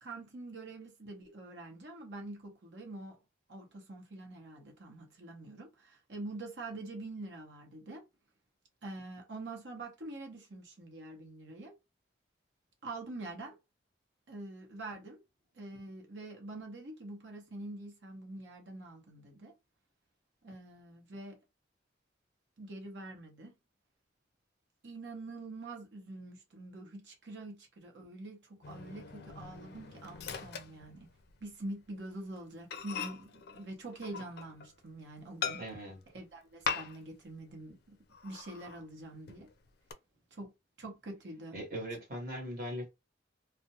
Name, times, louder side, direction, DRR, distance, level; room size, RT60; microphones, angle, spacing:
voice 1, 0.0-3.2 3.5-8.0 8.8-11.7 12.8-13.6 14.3-15.2 15.5-19.5 20.4-21.4 22.6-23.5 24.8-31.1 31.4-35.6 36.1-38.0 38.2-39.5 40.3-40.5 40.8-41.6, right 2 dB, 70° right, 0.9 m, -45 dB
Microwave oven, 28.6-31.5 31.8-32.0 32.4-32.5 32.7-34.8 35.4-36.0 36.6-37.2 37.5-37.6 38.1-38.8 39.3-39.9, left 6 dB, 60° left, 0.4 m, -41 dB
voice 2, 35.6-36.0 41.5-42.9, equal, 50° right, 1.1 m, -40 dB
2.4 x 2.1 x 2.8 m
head